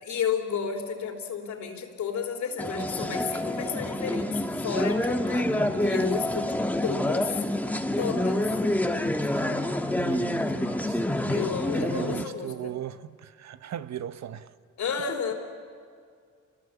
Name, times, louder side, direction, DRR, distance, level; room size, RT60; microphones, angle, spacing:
voice 1, 0.0-7.3 8.0-8.4 11.3-12.7 14.8-15.3, left 6 dB, 65° left, 3.6 m, -32 dB
sound 1, 2.6-12.2, left 1 dB, 5° left, 1.4 m, -27 dB
voice 2, 10.0-11.0 11.7-14.6, right 10 dB, 65° right, 1.0 m, -38 dB
28.0 x 21.5 x 7.2 m
cardioid pair, 90°, 30 cm